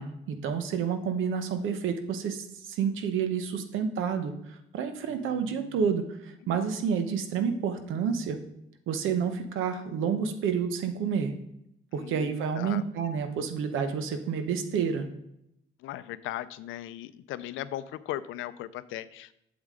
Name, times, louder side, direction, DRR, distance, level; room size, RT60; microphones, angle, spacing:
voice 1, 0.0-4.3 4.7-8.4 8.9-11.3 11.9-15.0, right 6 dB, 85° right, 8 dB, 0.9 m, -29 dB
voice 2, 5.1-5.8 6.4-6.5 11.9-12.8 15.8-19.4, left 13 dB, 85° left, 15 dB, 0.4 m, -38 dB
8.3 x 7.2 x 3.7 m, 0.79 s
cardioid pair, 90°, 20 cm